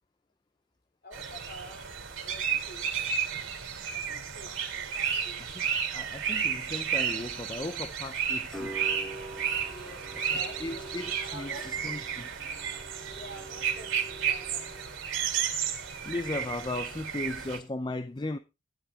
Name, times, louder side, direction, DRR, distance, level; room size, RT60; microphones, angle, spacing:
voice 1, 1.0-3.0 3.9-5.4 9.7-10.9 11.2-11.7 13.1-15.0, right 1 dB, 50° left, 3.7 m, -48 dB
sound 1, 1.1-17.6, right 8 dB, 85° right, 3.2 m, -32 dB
voice 2, 5.9-8.8 10.2-12.3 16.0-18.4, left 2 dB, 20° left, 0.5 m, -36 dB
sound 2, 8.5-15.3 15.6-16.5, right 1 dB, ahead, 2.5 m, -45 dB
11.5 x 11.0 x 3.6 m
head